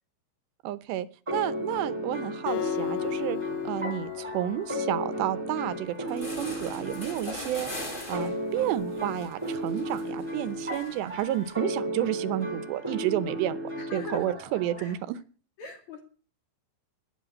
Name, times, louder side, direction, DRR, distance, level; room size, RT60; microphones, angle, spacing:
voice 1, 0.6-3.4 3.6-7.7 8.1-13.6 13.9-15.2, right 13 dB, 85° right, 15 dB, 3.0 m, -31 dB
sound 1, 1.3-15.0, right 1 dB, 5° right, 3.9 m, -35 dB
Acoustic guitar, 2.5-5.7, left 18 dB, 75° left, 2.4 m, -35 dB
sound 2, 5.7-5.8 6.1-11.5, equal, 15° left, 2.0 m, -41 dB
voice 2, 13.8-14.4 14.8-15.0 15.6-16.0, left 4 dB, 50° left, 5 dB, 3.2 m, -41 dB
12.0 x 11.0 x 8.6 m, 0.39 s
omnidirectional pair, 4.9 m